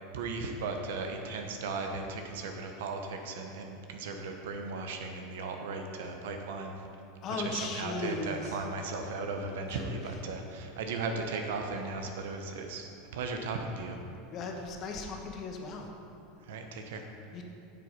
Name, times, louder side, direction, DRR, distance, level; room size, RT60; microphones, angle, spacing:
voice 1, 0.1-6.8 7.4-14.0 16.4-17.0, right 3 dB, 75° right, 4 dB, 1.0 m, -36 dB
voice 2, 7.2-8.6 9.7-9.8 14.3-15.9 17.3-17.4, left 3 dB, 45° left, 2 dB, 1.3 m, -37 dB
8.3 x 6.8 x 5.2 m, 2.7 s
hypercardioid pair, 95°, 0 cm